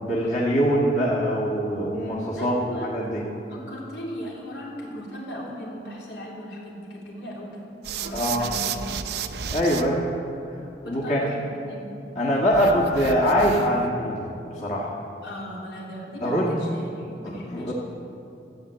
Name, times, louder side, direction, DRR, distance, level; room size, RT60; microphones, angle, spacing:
voice 1, 0.0-2.5 2.9-3.2 8.1-8.5 9.5-10.0 10.9-11.3 12.1-14.9 16.2-16.5 17.2-17.7, equal, 40° left, -6 dB, 1.6 m, -23 dB
voice 2, 2.4-2.9 3.5-7.6 7.9-9.2 10.8-11.9 15.2-17.7, equal, 80° left, -4 dB, 3.4 m, -37 dB
sound 1, 7.8-9.8 12.5-13.9, right 7 dB, 70° right, 0.6 m, -32 dB
14.0 x 8.1 x 8.1 m, 2.7 s
head